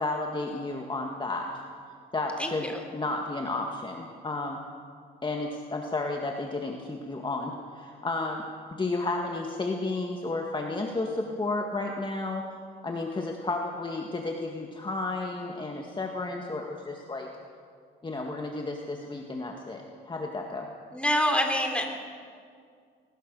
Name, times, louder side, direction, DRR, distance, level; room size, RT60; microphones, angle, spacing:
voice 1, 0.0-1.5 2.1-4.6 5.2-8.4 8.8-12.4 12.8-17.3 18.0-20.7, left 2 dB, 25° left, 1 dB, 1.9 m, -32 dB
voice 2, 2.4-2.8 20.9-21.9, equal, 5° left, 3 dB, 3.4 m, -26 dB
21.0 x 20.0 x 6.8 m, 2.2 s
cardioid pair, 90°, 20 cm